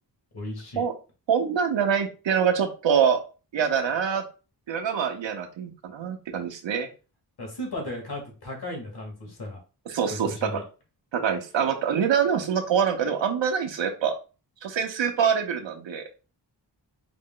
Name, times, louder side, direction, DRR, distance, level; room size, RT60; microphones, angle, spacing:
voice 1, 0.3-0.8 7.4-9.6 10.1-10.6, left 1 dB, 60° left, 1 dB, 2.0 m, -35 dB
voice 2, 1.3-3.2 3.5-4.2 4.7-6.9 9.9-10.6 11.1-14.1 14.6-16.0, right 7 dB, 90° right, 5 dB, 0.8 m, -25 dB
4.9 x 2.1 x 3.8 m, 0.33 s
cardioid pair, 75°, 44 cm